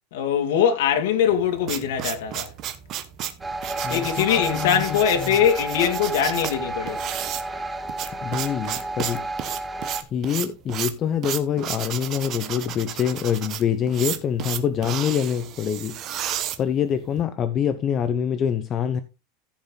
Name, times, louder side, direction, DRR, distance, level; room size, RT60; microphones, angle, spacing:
voice 1, 0.1-2.5 3.9-7.0, left 9 dB, 75° left, 2.2 m, -22 dB
sound 1, 1.3-17.2, right 11 dB, 30° right, 1.1 m, -33 dB
sound 2, 3.4-10.0, right 2 dB, 10° right, 0.8 m, -31 dB
voice 2, 3.8-5.0 8.2-9.3 10.1-16.0 16.6-19.0, left 8 dB, 25° left, 0.7 m, -25 dB
14.5 x 5.5 x 4.0 m
supercardioid pair, 170°, 0 cm